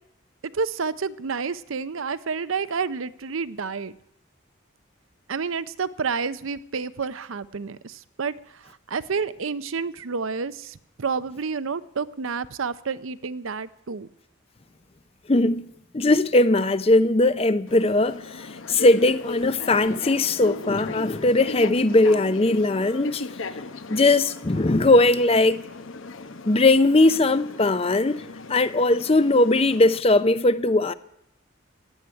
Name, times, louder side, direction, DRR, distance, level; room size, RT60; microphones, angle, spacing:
voice 1, 0.5-3.9 5.3-8.3 8.7-14.1, right 5 dB, 80° right, 0.7 m, -29 dB
voice 2, 15.3-15.7 15.9-23.2 23.9-25.6 26.5-28.2 28.5-30.9, left 2 dB, 30° left, 0.6 m, -19 dB
sound 1, 17.7-30.0, left 3 dB, 75° left, 1.0 m, -38 dB
16.0 x 9.2 x 9.6 m
head